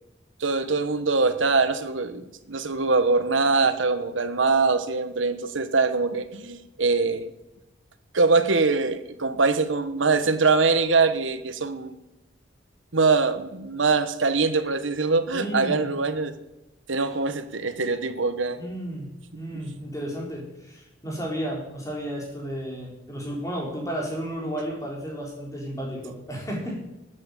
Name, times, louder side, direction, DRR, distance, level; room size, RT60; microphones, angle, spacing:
voice 1, 0.4-7.3 8.1-12.0 12.9-16.3 16.9-18.6, right 4 dB, 85° right, 10 dB, 1.2 m, -23 dB
voice 2, 15.3-15.9 18.6-19.1 19.3-26.7, equal, 15° left, -2 dB, 4.0 m, -33 dB
13.0 x 8.7 x 8.4 m, 0.98 s
head